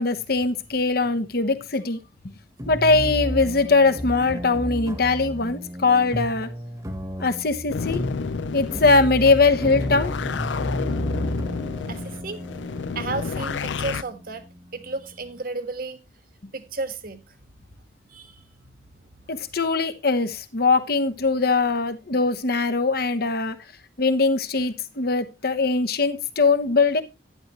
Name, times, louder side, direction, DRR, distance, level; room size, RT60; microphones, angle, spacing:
voice 1, 0.0-2.0 2.7-6.5 7.2-8.0 8.5-10.1 19.3-23.6 24.0-27.0, left 3 dB, 55° left, 1.1 m, -21 dB
sound 1, 2.6-15.4, equal, 20° right, 1.3 m, -33 dB
sound 2, 7.7-14.0, left 5 dB, 80° left, 0.5 m, -30 dB
voice 2, 11.9-12.4 12.9-14.5 14.7-16.0 16.5-17.4 18.1-18.4, right 3 dB, 50° right, 1.5 m, -33 dB
11.5 x 10.5 x 3.0 m
head